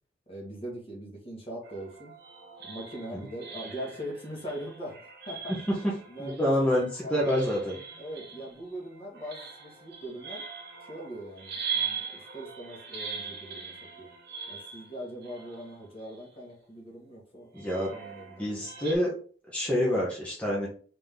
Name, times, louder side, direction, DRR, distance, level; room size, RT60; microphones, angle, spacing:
voice 1, 0.3-2.1 2.6-5.5 6.1-7.3 8.0-10.4 10.8-14.1 14.5-18.6, equal, 30° left, -2 dB, 1.6 m, -41 dB
sound 1, 1.6-16.5 17.5-18.9, right 6 dB, 55° right, 1.3 m, -41 dB
voice 2, 6.2-7.8 17.5-17.9 18.4-19.1 19.5-20.7, equal, 5° left, -5 dB, 1.1 m, -27 dB
3.8 x 3.7 x 3.6 m, 0.42 s
head